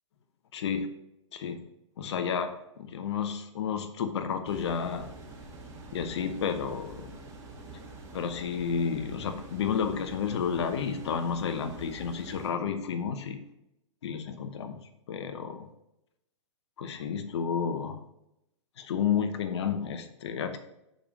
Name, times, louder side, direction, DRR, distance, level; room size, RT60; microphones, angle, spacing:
voice 1, 0.5-0.9 1.3-1.6 2.0-5.1 5.9-7.1 8.1-13.4 14.0-14.8 15.1-15.7 16.8-18.0 18.8-20.6, left 7 dB, 60° left, 8 dB, 0.9 m, -31 dB
sound 1, 4.4-12.5, right 2 dB, 20° right, 1.7 m, -46 dB
6.9 x 5.2 x 4.6 m, 0.84 s
figure-of-eight pair, 115°, 16 cm